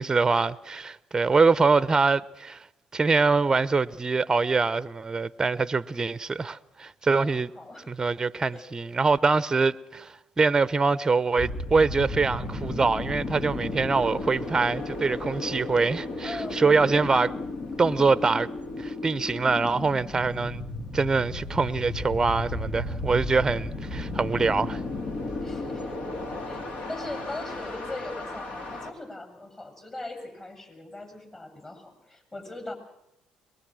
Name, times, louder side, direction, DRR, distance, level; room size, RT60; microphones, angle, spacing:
voice 1, 0.0-2.7 2.9-7.5 7.9-17.3 17.8-18.5 18.8-20.6 20.9-24.8, right 4 dB, 25° right, 0.8 m, -24 dB
voice 2, 7.2-7.9 8.5-8.6 16.2-17.0 25.4-26.0 26.5-26.6 26.9-32.7, left 2 dB, 25° left, 7.1 m, -39 dB
sound 1, 11.4-28.9, left 2 dB, 60° left, 3.4 m, -34 dB
23.0 x 21.5 x 6.3 m
supercardioid pair, 65°, 2 cm